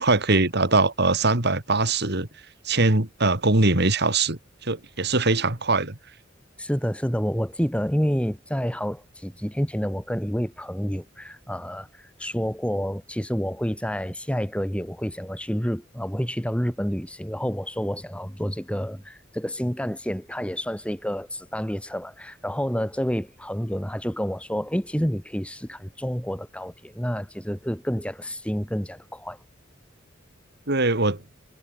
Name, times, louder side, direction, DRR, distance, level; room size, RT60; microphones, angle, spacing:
voice 1, 0.0-2.3 2.6-5.9 30.7-31.2, right 3 dB, 55° right, 3.1 m, -22 dB
voice 2, 6.6-29.4, equal, 5° left, 5.1 m, -29 dB
head